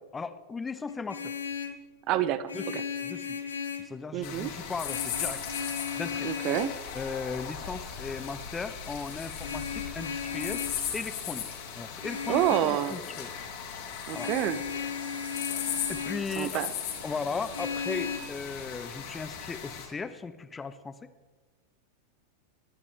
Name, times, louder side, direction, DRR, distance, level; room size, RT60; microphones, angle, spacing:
voice 1, 0.1-1.4 2.5-3.4 3.8-5.4 6.0-6.3 6.9-10.7 10.9-13.3 14.1-14.3 15.9-16.6 17.0-21.1, left 4 dB, 15° left, 13 dB, 0.8 m, -37 dB
Vehicle horn car horn honking, 0.9-1.8 2.5-4.0 4.8-6.8 9.4-10.8 12.0-12.7 14.1-16.3 17.5-18.2, left 6 dB, 75° left, 1.3 m, -35 dB
voice 2, 2.1-2.5 4.1-4.5 6.2-6.7 12.3-13.0 14.1-14.6 16.4-16.7, right 12 dB, 40° right, 13 dB, 0.7 m, -27 dB
sound 1, 4.2-19.9, left 8 dB, 50° left, 3.3 m, -38 dB
25.0 x 12.0 x 3.6 m, 1.3 s
figure-of-eight pair, 90°, 0 cm